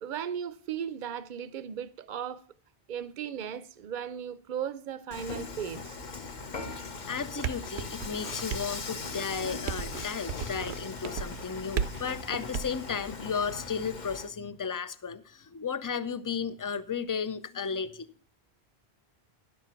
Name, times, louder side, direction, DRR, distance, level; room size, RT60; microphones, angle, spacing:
voice 1, 0.0-2.4 2.9-6.0, right 8 dB, 55° right, 0.8 m, -36 dB
Dishes pots and pans / Frying (food), 5.1-14.3, left 4 dB, 45° left, 1.0 m, -40 dB
voice 2, 7.1-18.1, left 6 dB, 25° left, 0.4 m, -34 dB
sound 1, 7.2-12.7, right 7 dB, 85° right, 1.0 m, -36 dB
10.5 x 7.0 x 5.8 m
omnidirectional pair, 1.1 m